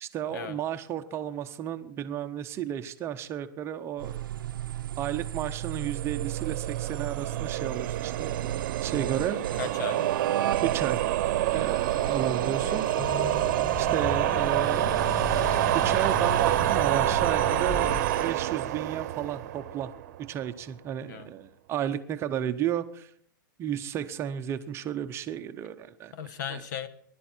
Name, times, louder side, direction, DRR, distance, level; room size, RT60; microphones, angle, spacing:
voice 1, 0.0-4.3 5.0-9.4 10.6-11.1 11.5-12.9 13.8-15.5 15.7-17.9 18.2-19.9 20.2-23.1 23.6-26.1 26.5-26.6, right 10 dB, 25° right, 9 dB, 0.8 m, -33 dB
sound 1, 4.0-18.3, right 11 dB, 80° right, 0.7 m, -35 dB
sound 2, 6.0-20.3, right 14 dB, 50° right, 0.9 m, -28 dB
voice 2, 9.2-10.1 12.2-12.3 12.6-13.0 21.0-21.3 26.1-26.9, left 8 dB, 60° left, 13 dB, 1.3 m, -38 dB
sound 3, 13.0-18.0, left 6 dB, 15° left, 0.6 m, -36 dB
21.0 x 11.5 x 4.5 m, 0.67 s
hypercardioid pair, 145°, 11 cm